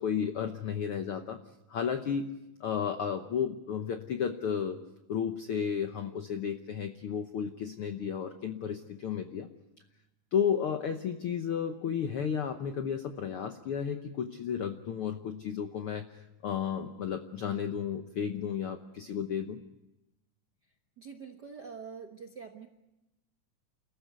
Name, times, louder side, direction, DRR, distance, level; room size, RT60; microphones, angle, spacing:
voice 1, 0.0-1.4 1.7-2.3 2.6-4.8 5.1-9.5 10.3-19.6, left 7 dB, 75° left, 7 dB, 1.3 m, -33 dB
voice 2, 21.0-22.7, right 5 dB, 60° right, 3 dB, 1.1 m, -45 dB
29.5 x 14.0 x 9.4 m, 0.96 s
omnidirectional pair, 3.8 m